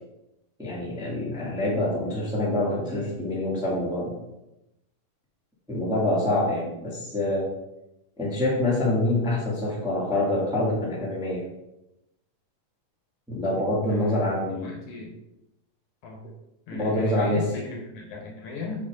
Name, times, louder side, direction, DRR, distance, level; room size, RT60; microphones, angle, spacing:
voice 1, 0.6-4.1 5.7-7.5 8.2-11.4 13.3-14.7 16.7-17.4, left 1 dB, ahead, -6 dB, 1.6 m, -26 dB
voice 2, 13.9-15.1 16.0-16.2 16.7-18.9, left 3 dB, 65° left, 0 dB, 2.6 m, -37 dB
8.2 x 5.4 x 3.7 m, 0.90 s
omnidirectional pair, 3.9 m